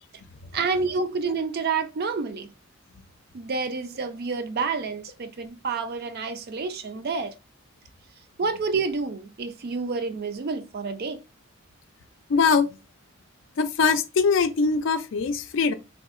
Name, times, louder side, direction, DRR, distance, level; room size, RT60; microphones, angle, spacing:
voice 1, 0.5-2.5 3.3-7.3 8.4-11.2, right 4 dB, 50° right, 0.4 m, -29 dB
voice 2, 12.3-12.7 13.6-15.7, left 5 dB, 60° left, 0.4 m, -22 dB
3.5 x 2.7 x 2.4 m
head